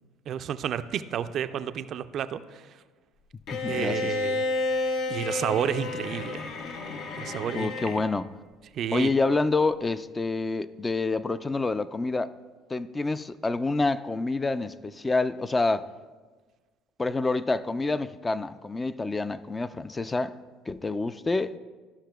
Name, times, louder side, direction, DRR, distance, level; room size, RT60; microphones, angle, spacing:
voice 1, 0.3-2.6 3.7-4.4 5.1-6.4 7.2-8.0 8.7-9.1, right 9 dB, 55° right, 0.4 m, -31 dB
Bowed string instrument, 3.5-8.1, left 3 dB, 60° left, 0.7 m, -31 dB
voice 2, 3.5-4.1 7.5-8.3 8.9-12.3 12.7-15.9 17.0-20.4 20.7-21.6, left 3 dB, 20° left, 0.3 m, -27 dB
13.5 x 5.7 x 2.2 m
hypercardioid pair, 70°, 0 cm